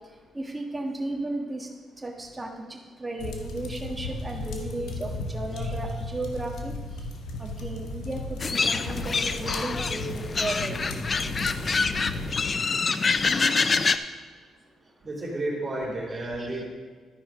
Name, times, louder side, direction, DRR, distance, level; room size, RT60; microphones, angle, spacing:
voice 1, 0.3-1.7 2.0-6.7 7.4-10.8 16.1-16.6, right 2 dB, 15° right, 1 dB, 1.4 m, -34 dB
sound 1, 3.2-12.5, left 2 dB, 85° left, 0.9 m, -35 dB
sound 2, 8.4-14.0, left 4 dB, 35° left, 0.4 m, -26 dB
voice 2, 15.0-16.6, right 1 dB, 35° right, -3 dB, 2.8 m, -31 dB
11.5 x 5.0 x 5.0 m, 1.5 s
cardioid pair, 90°, 0 cm